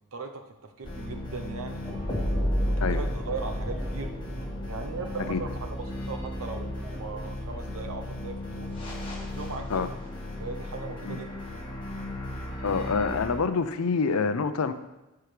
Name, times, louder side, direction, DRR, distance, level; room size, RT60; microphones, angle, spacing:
voice 1, 0.1-1.8 2.9-4.2 4.7-5.5 5.8-8.8 9.2-9.9 10.3-11.6, right 4 dB, 80° right, 5 dB, 0.8 m, -38 dB
sound 1, 0.8-13.3, equal, 25° left, 1.6 m, -33 dB
sound 2, 1.7-7.7, right 1 dB, 15° right, 0.9 m, -48 dB
voice 2, 12.6-14.7, left 5 dB, 85° left, 11 dB, 0.5 m, -26 dB
13.5 x 4.7 x 3.3 m, 1.0 s
head